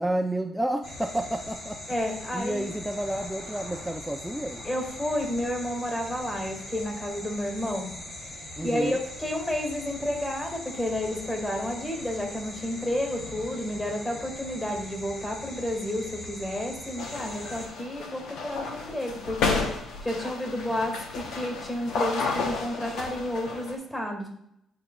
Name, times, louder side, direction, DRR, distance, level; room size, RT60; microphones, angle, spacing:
voice 1, 0.0-1.8 2.3-4.6 8.6-9.0, right 1 dB, 5° right, 4 dB, 0.4 m, -30 dB
sound 1, 0.8-17.7, left 1 dB, 65° left, 1.8 m, -41 dB
voice 2, 1.9-2.7 4.6-7.9 8.6-24.3, left 1 dB, 15° left, 2 dB, 2.1 m, -31 dB
sound 2, 17.0-23.8, left 4 dB, 85° left, 0.9 m, -32 dB
11.0 x 4.7 x 2.3 m, 0.77 s
cardioid pair, 90°, 0 cm